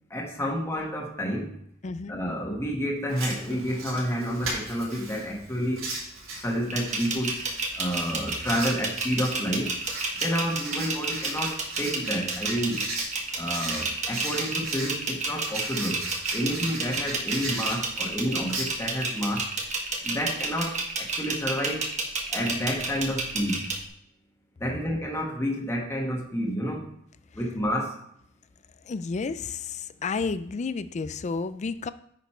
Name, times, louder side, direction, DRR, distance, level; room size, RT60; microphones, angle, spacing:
voice 1, 0.1-1.5 2.1-5.9 6.4-7.4 7.7-9.8 10.2-12.8 13.4-16.1 16.3-19.5 20.0-21.9 22.3-23.7 24.6-26.9 27.3-28.0, equal, 15° left, -2 dB, 1.4 m, -29 dB
voice 2, 1.8-2.2 28.8-31.9, left 4 dB, 35° left, 14 dB, 0.4 m, -31 dB
Writing, 3.1-19.4, right 2 dB, 80° right, 3.8 m, -38 dB
sound 1, 6.7-23.8, right 3 dB, 35° right, 1.3 m, -30 dB
9.2 x 5.2 x 4.3 m, 0.70 s
head